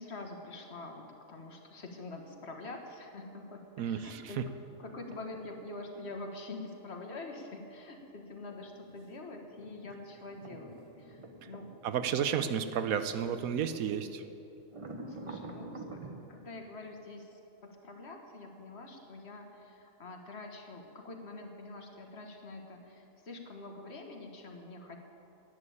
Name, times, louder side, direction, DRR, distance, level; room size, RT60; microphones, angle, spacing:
voice 1, 0.0-11.7 12.5-12.6 15.0-25.0, left 2 dB, 50° left, 3 dB, 1.6 m, -46 dB
voice 2, 3.8-4.2 11.8-14.2, right 8 dB, 90° right, 10 dB, 1.2 m, -32 dB
sound 1, 4.8-6.2 8.3-13.4 13.8-14.0 14.7-16.3, right 2 dB, 25° right, 0.9 m, -48 dB
10.5 x 9.6 x 8.6 m, 2.8 s
omnidirectional pair, 1.4 m